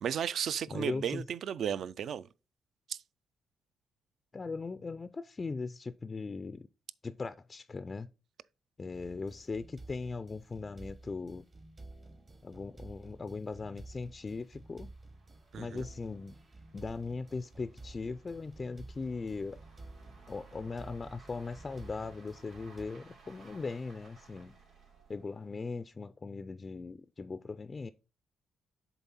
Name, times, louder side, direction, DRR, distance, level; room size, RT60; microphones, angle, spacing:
voice 1, 0.0-2.3 2.9-3.0 15.5-15.8, right 8 dB, 65° right, 0.3 m, -34 dB
voice 2, 0.7-1.2 4.3-6.7 7.0-8.1 8.8-11.5 12.4-14.9 15.5-16.3 16.7-19.6 20.3-24.5 25.1-27.9, left 4 dB, 30° left, 0.3 m, -39 dB
sound 1, 8.9-22.8, right 2 dB, 30° right, 0.8 m, -52 dB
sound 2, 10.4-10.5 10.8-10.9 11.5-25.9, right 4 dB, 85° right, 3.0 m, -60 dB
7.1 x 4.0 x 4.1 m
cardioid pair, 90°, 0 cm